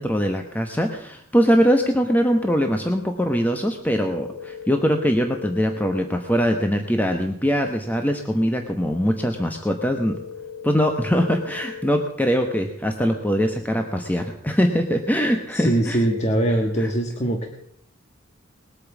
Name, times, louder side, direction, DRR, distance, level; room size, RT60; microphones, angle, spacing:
voice 1, 0.0-10.2 10.6-16.0 16.8-16.9, equal, 10° left, 4 dB, 1.0 m, -22 dB
sound 1, 4.1-6.0 10.0-12.0 16.0-16.9, left 6 dB, 60° left, 3.1 m, -38 dB
voice 2, 15.5-17.5, right 1 dB, 35° left, 3 dB, 1.4 m, -22 dB
20.5 x 8.6 x 7.2 m, 0.71 s
head